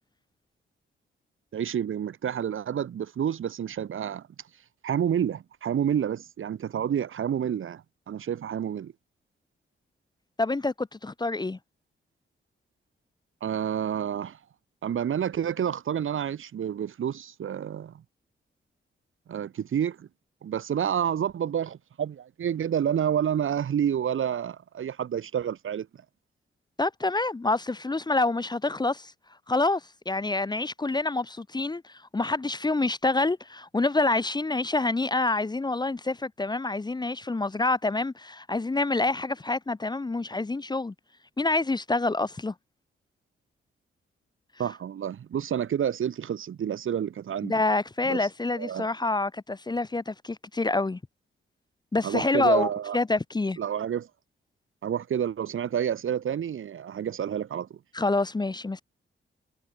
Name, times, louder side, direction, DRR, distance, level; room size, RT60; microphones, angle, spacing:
voice 1, 1.5-4.2 4.8-8.9 13.4-14.4 14.8-18.0 19.3-20.1 20.4-25.9 44.6-47.5 48.0-48.2 48.6-48.9 52.0-53.0 53.6-54.1 54.8-57.8, right 9 dB, 75° right, 2.9 m, -29 dB
voice 2, 10.4-11.6 26.8-29.1 29.5-29.8 30.1-40.9 41.4-42.5 47.4-51.0 51.9-53.6 57.9-58.8, left 2 dB, 20° left, 0.8 m, -27 dB
cardioid pair, 80°, 21 cm